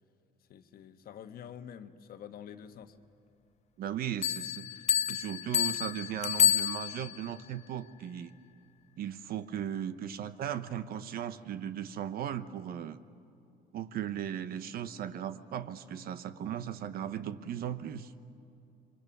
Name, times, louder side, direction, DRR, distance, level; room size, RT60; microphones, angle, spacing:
voice 1, 0.5-3.0, left 8 dB, 60° left, 8 dB, 1.3 m, -47 dB
voice 2, 3.8-4.7 5.1-8.3 9.0-13.0 13.7-18.1, right 9 dB, 60° right, 13 dB, 1.0 m, -37 dB
Bell, 4.2-7.3, left 10 dB, 40° left, 0.5 m, -29 dB
28.5 x 24.5 x 6.1 m, 2.7 s
cardioid pair, 110°, 17 cm